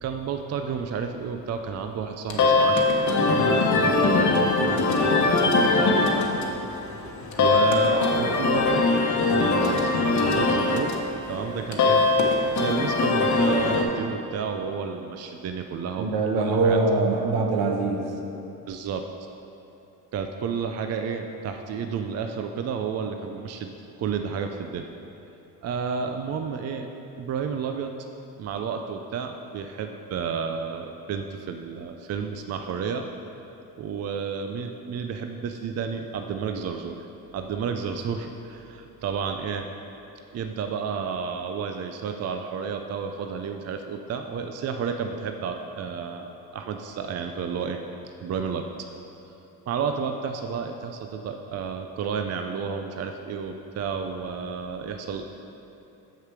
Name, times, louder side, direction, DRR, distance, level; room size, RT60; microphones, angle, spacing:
voice 1, 0.0-3.0 3.3-6.6 7.4-8.9 9.3-10.9 11.3-12.0 12.5-16.8 18.7-19.0 20.1-23.7 24.0-24.9 25.6-26.9 27.2-27.9 28.4-33.1 33.8-37.0 37.3-39.7 40.3-47.8 48.2-48.7 49.7-55.3, right 6 dB, 45° right, 5 dB, 0.4 m, -31 dB
sound 1, 2.3-13.8, left 3 dB, 50° left, 1.0 m, -22 dB
voice 2, 16.0-18.1, right 3 dB, 75° right, 2 dB, 1.1 m, -23 dB
6.7 x 6.5 x 4.7 m, 2.9 s
cardioid pair, 100°, 38 cm